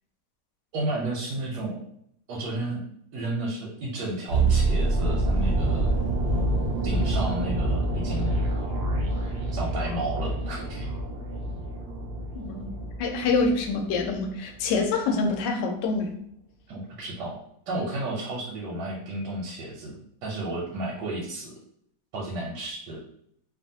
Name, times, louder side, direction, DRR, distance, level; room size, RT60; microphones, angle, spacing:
voice 1, 0.7-1.8 2.3-2.8 3.1-5.9 6.8-8.3 9.5-10.9 16.7-17.4 17.7-20.0 20.2-21.5 22.1-23.0, right 1 dB, 85° right, -4 dB, 1.2 m, -32 dB
sound 1, 4.3-14.3 14.5-14.8, right 2 dB, 50° right, 0.8 m, -27 dB
voice 2, 12.3-12.7 13.0-16.2, left 3 dB, 85° left, 3 dB, 1.2 m, -26 dB
2.9 x 2.4 x 2.6 m, 0.70 s
omnidirectional pair, 1.8 m